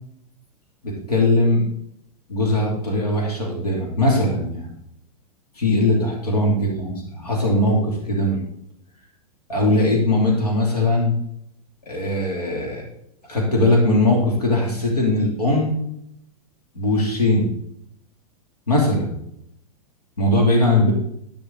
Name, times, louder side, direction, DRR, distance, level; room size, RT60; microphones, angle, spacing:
voice 1, 0.8-1.6 2.3-4.7 5.5-6.9 7.2-8.4 9.5-11.1 11.8-12.9 13.3-15.8 16.7-17.5 18.7-19.1 20.2-20.9, left 1 dB, 85° left, -1 dB, 2.7 m, -20 dB
10.0 x 6.9 x 3.9 m, 0.73 s
hypercardioid pair, 105°, 20 cm